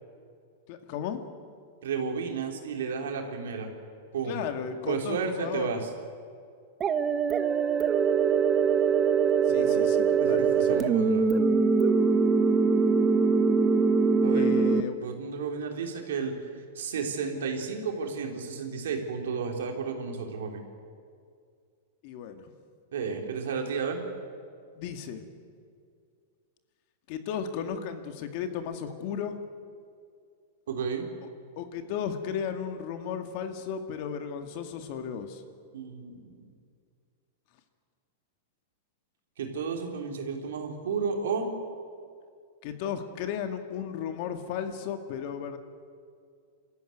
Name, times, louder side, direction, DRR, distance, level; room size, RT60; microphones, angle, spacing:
voice 1, 0.7-1.2 4.3-5.8 9.4-10.9 14.2-14.9 22.0-22.5 24.8-25.2 27.1-29.4 31.6-35.4 42.6-45.6, left 8 dB, 55° left, 7 dB, 2.1 m, -35 dB
voice 2, 1.8-3.7 4.1-4.4 4.9-5.9 9.5-9.9 10.2-11.4 14.2-14.6 15.0-16.4 16.8-20.6 22.9-24.0 30.7-31.1 35.7-36.3 39.4-41.5, right 5 dB, 80° right, 2 dB, 3.5 m, -32 dB
sound 1, 6.8-14.8, right 5 dB, 25° right, 1.2 m, -23 dB
25.5 x 14.0 x 9.3 m, 2.3 s
hypercardioid pair, 120°, 0 cm